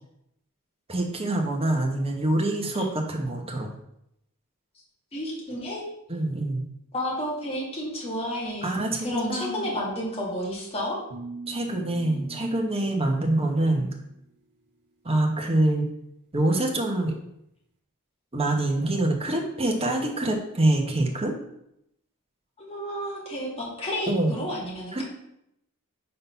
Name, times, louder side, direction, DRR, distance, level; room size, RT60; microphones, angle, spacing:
voice 1, 0.9-3.7 6.1-6.6 8.6-9.7 11.5-13.9 15.0-15.8 16.3-17.2 18.3-21.3 24.1-24.3 24.9-25.0, right 1 dB, 25° right, 2 dB, 1.1 m, -25 dB
voice 2, 5.1-5.8 6.9-11.0 22.6-25.0, equal, 25° left, -4 dB, 2.0 m, -31 dB
sound 1, 11.1-14.2, right 2 dB, 90° right, 1.1 m, -43 dB
5.4 x 3.9 x 5.6 m, 0.79 s
head